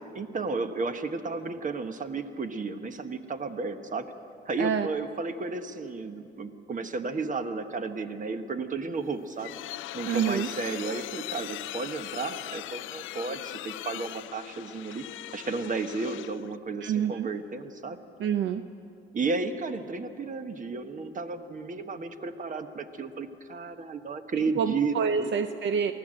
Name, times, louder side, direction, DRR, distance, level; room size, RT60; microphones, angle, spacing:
voice 1, 0.1-4.1 4.4-9.6 9.9-18.0 19.1-25.3, right 4 dB, 40° right, 8 dB, 1.4 m, -33 dB
sound 1, 9.0-16.5, left 15 dB, 80° left, 0.4 m, -40 dB
voice 2, 10.1-10.5 16.8-17.3 18.2-18.6 24.6-25.9, right 7 dB, 70° right, 9 dB, 0.7 m, -27 dB
23.5 x 16.0 x 7.7 m, 2.6 s
cardioid pair, 90°, 20 cm